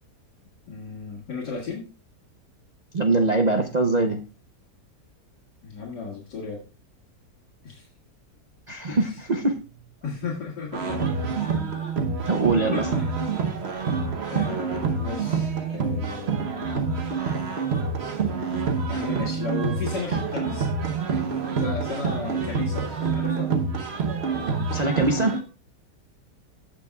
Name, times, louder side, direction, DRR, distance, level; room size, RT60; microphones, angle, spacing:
voice 1, 0.7-1.9 5.6-6.6 7.6-7.9 8.9-9.2 10.0-10.9 12.7-13.1 14.3-16.6 18.3-20.7 21.6-23.5, left 4 dB, 85° left, -3 dB, 2.6 m, -34 dB
voice 2, 2.9-4.2 8.7-9.6 12.3-12.9 24.7-25.4, right 2 dB, 75° right, 5 dB, 0.3 m, -22 dB
sound 1, 10.7-25.4, right 5 dB, 45° right, 1.1 m, -27 dB
17.0 x 6.0 x 2.3 m, 0.34 s
omnidirectional pair, 1.8 m